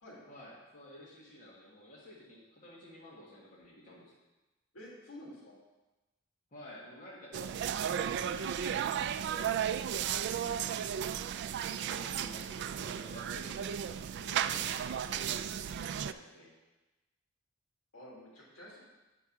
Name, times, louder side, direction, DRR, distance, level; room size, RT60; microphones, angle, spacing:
voice 1, 0.3-4.1 6.5-9.5 11.6-16.5, left 1 dB, 40° left, -7 dB, 1.7 m, -52 dB
voice 2, 4.7-5.5 10.1-10.3 14.4-14.6 15.1-15.2 17.9-18.8, left 1 dB, 75° left, -4 dB, 2.4 m, -50 dB
sound 1, 7.3-16.1, right 9 dB, 55° right, 0.3 m, -34 dB
8.6 x 4.6 x 5.9 m, 1.1 s
head